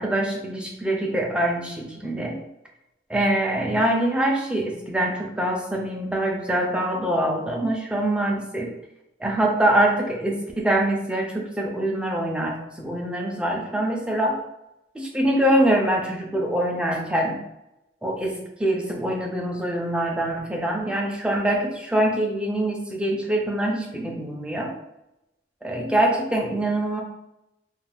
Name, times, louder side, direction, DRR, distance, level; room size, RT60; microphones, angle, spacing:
voice 1, 0.0-2.4 3.1-8.7 9.2-14.4 14.9-17.4 18.0-24.7 25.6-27.0, right 1 dB, 5° right, 0 dB, 0.4 m, -24 dB
2.4 x 2.3 x 3.4 m, 0.89 s
head